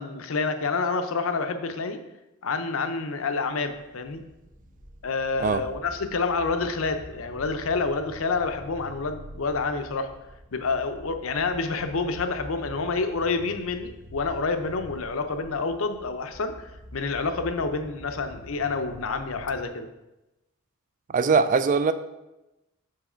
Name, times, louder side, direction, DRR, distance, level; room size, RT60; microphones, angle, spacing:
voice 1, 0.0-2.0 2.4-4.2 5.0-10.1 10.5-19.9, left 4 dB, 70° left, 8 dB, 0.6 m, -28 dB
sound 1, 3.9-19.6, equal, 20° right, 0.9 m, -46 dB
voice 2, 21.1-21.9, right 5 dB, 40° right, 12 dB, 0.3 m, -21 dB
6.3 x 4.7 x 4.3 m, 0.98 s
head